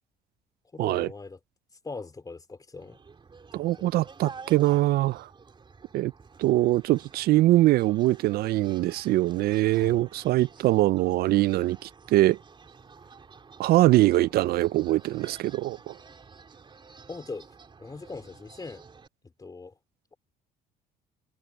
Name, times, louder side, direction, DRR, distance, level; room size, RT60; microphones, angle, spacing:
voice 1, 0.7-1.4 1.8-3.0 3.7-3.9 9.8-10.1 17.1-17.5 17.8-18.8 19.2-19.8, left 3 dB, 20° left, 3.6 m, -41 dB
sound 1, 2.8-19.1, right 5 dB, 30° right, 3.8 m, -50 dB
voice 2, 3.5-5.3 5.9-6.1 6.4-12.4 13.6-15.9, right 16 dB, 70° right, 0.4 m, -23 dB
cardioid pair, 110°, 17 cm